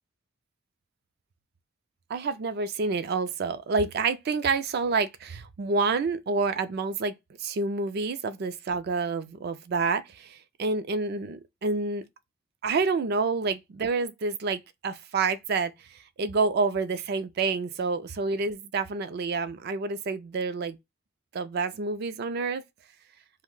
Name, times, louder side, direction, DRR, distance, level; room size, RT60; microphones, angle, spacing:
voice 1, 2.1-7.1 7.4-12.1 12.6-20.8 21.3-22.6, right 4 dB, 50° right, 0.4 m, -28 dB
2.6 x 2.1 x 3.7 m
head